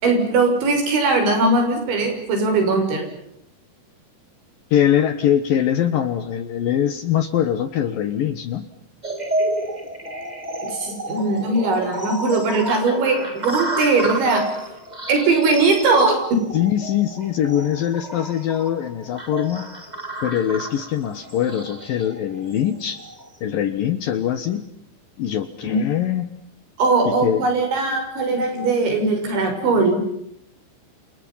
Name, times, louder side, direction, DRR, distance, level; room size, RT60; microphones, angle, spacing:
voice 1, 0.0-3.1 10.7-14.5 15.1-16.4 25.6-25.8 26.8-30.0, right 3 dB, 75° right, 5 dB, 8.7 m, -20 dB
voice 2, 4.7-8.6 16.5-19.7 20.2-23.0 23.4-24.7 25.2-26.3 27.0-27.5, left 10 dB, 65° left, 11 dB, 2.5 m, -22 dB
sound 1, 9.0-23.3, right 1 dB, 15° right, 1.8 m, -31 dB
29.5 x 29.0 x 5.7 m, 0.74 s
omnidirectional pair, 5.3 m